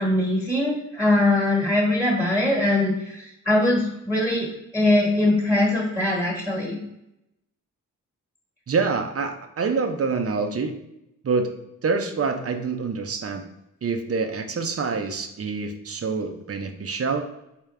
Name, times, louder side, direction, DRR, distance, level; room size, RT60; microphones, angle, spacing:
voice 1, 0.0-4.5 4.7-6.8, left 1 dB, 5° right, -3 dB, 1.3 m, -22 dB
voice 2, 8.7-10.8 11.2-11.5 11.8-13.4 13.8-17.3, right 4 dB, 45° right, 6 dB, 0.5 m, -26 dB
3.5 x 2.9 x 3.3 m, 0.85 s
cardioid pair, 55°, 33 cm